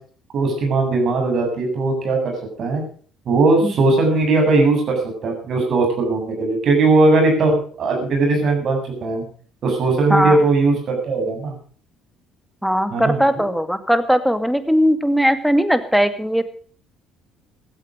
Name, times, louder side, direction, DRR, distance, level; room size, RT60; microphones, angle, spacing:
voice 1, 0.3-2.2 2.6-2.8 3.3-9.2 9.6-11.5 12.9-13.2, right 3 dB, 50° right, 2 dB, 7.9 m, -18 dB
voice 2, 12.6-16.4, equal, ahead, 11 dB, 2.2 m, -18 dB
16.5 x 13.5 x 5.1 m, 0.43 s
hypercardioid pair, 55°, 0 cm